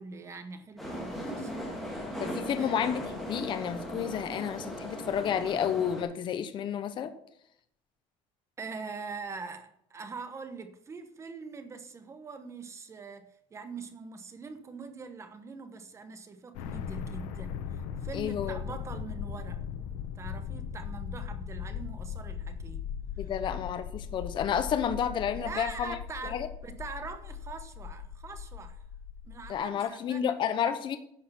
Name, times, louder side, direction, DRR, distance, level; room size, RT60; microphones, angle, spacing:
voice 1, 0.0-1.5 2.6-2.7 8.6-19.6 20.1-22.8 25.3-28.8 29.3-30.3, right 4 dB, 20° right, 1.0 m, -43 dB
sound 1, 0.8-6.0, equal, ahead, 2.6 m, -38 dB
voice 2, 2.2-7.1 18.1-18.6 23.2-26.0 26.3-26.5 29.5-31.0, left 8 dB, 35° left, 0.9 m, -31 dB
sound 2, 16.5-29.6, left 8 dB, 90° left, 1.2 m, -39 dB
11.0 x 6.6 x 5.7 m
cardioid pair, 155°, 13 cm